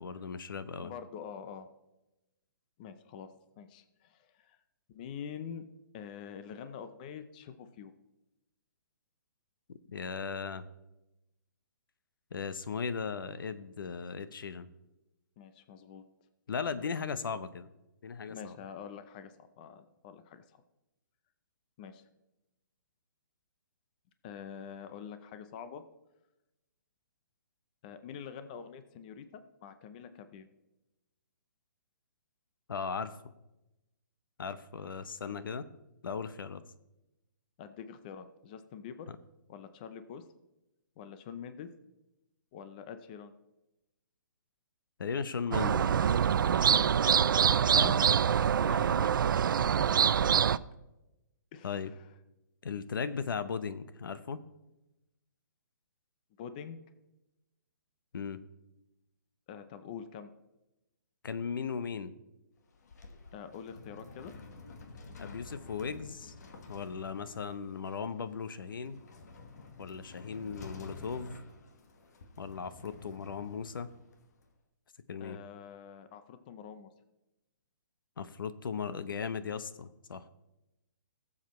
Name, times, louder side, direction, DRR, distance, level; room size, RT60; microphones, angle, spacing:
voice 1, 0.0-0.9 9.9-10.6 12.3-14.7 16.5-17.7 18.0-18.6 32.7-33.1 34.4-35.7 36.0-36.6 45.0-45.9 47.7-48.0 49.0-49.2 51.6-51.9 52.6-54.4 58.1-58.4 61.2-62.2 65.2-66.3 66.7-69.0 69.8-71.4 72.4-73.9 75.1-75.4 78.2-80.3, left 6 dB, 80° left, 13 dB, 0.8 m, -37 dB
voice 2, 0.8-1.7 2.8-3.3 3.6-4.6 4.9-5.7 5.9-7.9 15.4-16.0 18.3-20.6 21.8-22.0 24.2-25.8 27.8-30.5 37.6-39.1 39.5-40.2 41.0-41.7 42.5-43.3 46.7-47.5 47.8-48.1 48.7-48.9 49.6-49.9 50.2-50.3 51.5-52.0 56.4-56.8 59.5-60.3 63.3-64.3 75.2-76.9, left 7 dB, 25° left, 11 dB, 0.5 m, -46 dB
sound 1, 45.5-50.6, right 8 dB, 75° right, 0.4 m, -25 dB
sound 2, 62.6-74.5, left 3 dB, 50° left, 1.3 m, -51 dB
19.0 x 7.4 x 3.1 m, 0.95 s
hypercardioid pair, 170°, 11 cm